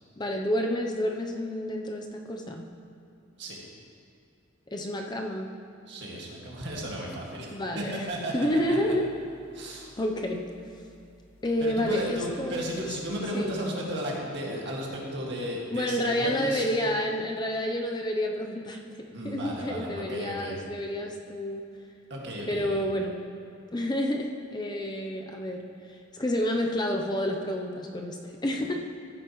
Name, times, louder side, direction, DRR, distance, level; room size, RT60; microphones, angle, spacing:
voice 1, 0.2-2.6 4.7-5.5 7.5-8.1 8.3-9.1 10.0-10.4 11.4-12.9 13.3-13.6 15.7-21.6 22.5-23.2 23.7-28.7, left 1 dB, 20° left, 2 dB, 0.6 m, -29 dB
voice 2, 5.9-8.3 8.7-8.9 9.5-9.9 11.6-16.7 19.1-20.6 22.1-22.8, equal, 60° right, -3 dB, 1.9 m, -34 dB
sound 1, 7.8-13.1, left 1 dB, 80° left, 2.5 m, -59 dB
15.0 x 9.0 x 3.1 m, 2.5 s
head